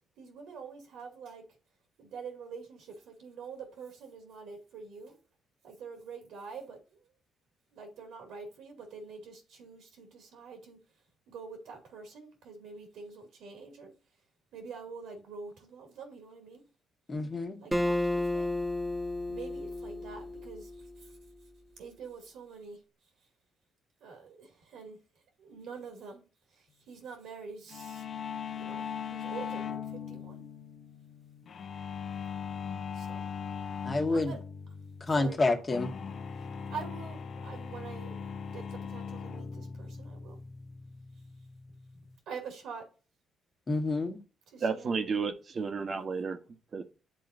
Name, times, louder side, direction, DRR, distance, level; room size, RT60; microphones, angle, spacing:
voice 1, 0.2-1.5 2.0-5.2 5.6-7.1 7.7-10.8 11.3-13.9 14.5-16.6 17.6-18.5 19.3-21.2 21.8-22.8 24.0-25.0 25.4-26.2 26.5-28.1 28.6-30.4 32.9-33.3 33.7-34.4 35.1-35.4 36.4-40.4 41.9-42.9 44.5-45.0, right 5 dB, 85° right, 2.4 m, -46 dB
voice 2, 17.1-17.6 33.8-34.3 35.0-36.0 43.7-44.2, left 2 dB, 30° left, 1.5 m, -28 dB
Acoustic guitar, 17.7-21.1, left 1 dB, 10° right, 1.2 m, -32 dB
sound 1, 27.7-42.2, left 6 dB, 55° left, 0.9 m, -40 dB
voice 3, 44.6-46.4 46.7-46.8, right 5 dB, 45° right, 1.2 m, -32 dB
11.0 x 3.8 x 2.6 m
cardioid pair, 90°, 0 cm